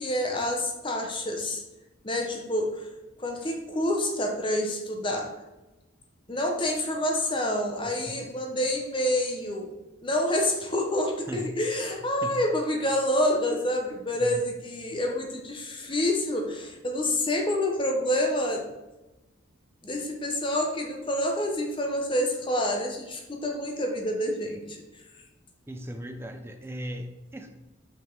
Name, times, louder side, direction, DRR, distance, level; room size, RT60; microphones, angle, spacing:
voice 1, 0.0-1.6 2.0-2.9 3.2-5.3 6.3-9.7 10.0-18.6 19.8-24.8, left 1 dB, 25° left, 3 dB, 0.8 m, -28 dB
voice 2, 25.7-27.5, equal, 10° right, 6 dB, 0.5 m, -37 dB
6.1 x 5.2 x 3.8 m, 1.1 s
head